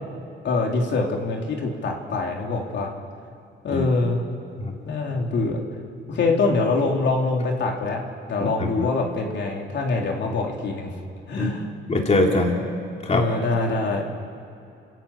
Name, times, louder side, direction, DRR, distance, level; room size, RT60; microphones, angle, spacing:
voice 1, 0.4-2.9 3.6-4.2 4.9-5.6 6.1-8.0 8.3-11.0 11.3-11.7 13.1-14.1, left 3 dB, 65° left, 0 dB, 3.7 m, -24 dB
voice 2, 8.4-8.9 11.4-11.5 11.9-12.6 13.0-13.2, left 2 dB, 35° left, 0 dB, 3.1 m, -22 dB
30.0 x 13.5 x 8.8 m, 2.6 s
cardioid pair, 90°, 20 cm